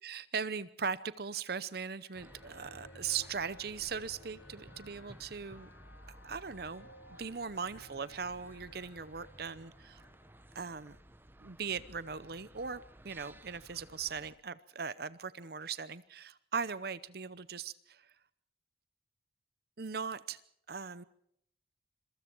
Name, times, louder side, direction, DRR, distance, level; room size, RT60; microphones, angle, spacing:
voice 1, 0.0-5.7 6.2-6.9 7.2-10.0 10.5-11.0 11.4-18.1 19.8-20.4 20.7-21.0, right 6 dB, 55° right, 16 dB, 0.8 m, -39 dB
sound 1, 1.8-11.3, left 1 dB, 75° left, 1.5 m, -59 dB
sound 2, 2.1-14.4, right 1 dB, 10° right, 0.9 m, -56 dB
26.5 x 23.0 x 4.6 m, 0.71 s
head